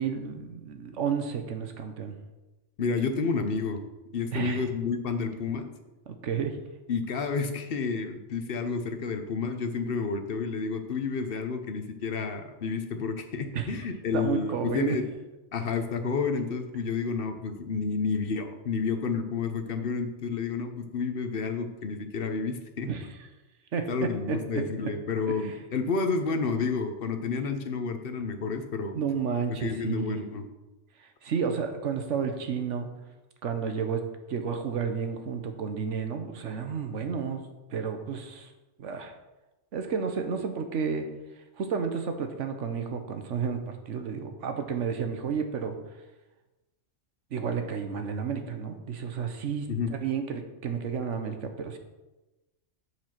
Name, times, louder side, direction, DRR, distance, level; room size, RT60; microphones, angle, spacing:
voice 1, 0.0-2.1 4.3-4.6 6.1-6.6 13.5-13.7 14.1-15.0 22.9-23.1 23.7-24.9 25.3-25.5 28.9-30.2 31.0-32.9 33.4-37.4 37.7-38.5 38.8-39.1 39.7-41.1 41.6-45.8 47.3-51.8, right 6 dB, 80° right, 6 dB, 1.3 m, -31 dB
voice 2, 2.8-3.8 4.1-5.7 6.9-15.1 15.5-22.9 23.9-29.0 29.6-30.5 49.7-49.9, left 4 dB, 55° left, 7 dB, 1.0 m, -30 dB
7.3 x 4.8 x 6.0 m, 1.1 s
omnidirectional pair, 1.2 m